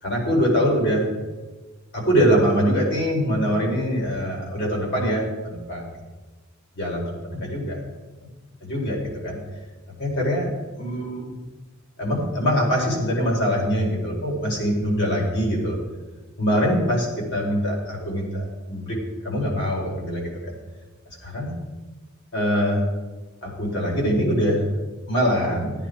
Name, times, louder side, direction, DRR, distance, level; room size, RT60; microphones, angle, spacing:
voice 1, 0.0-1.1 1.9-5.8 6.7-7.8 8.2-8.3 8.6-9.4 10.0-10.5 10.8-11.2 12.0-15.8 16.4-20.5 21.1-21.6 22.3-22.8 23.4-24.6 25.1-25.7, equal, 60° left, -2 dB, 4.7 m, -23 dB
16.5 x 9.4 x 4.7 m, 1.2 s
head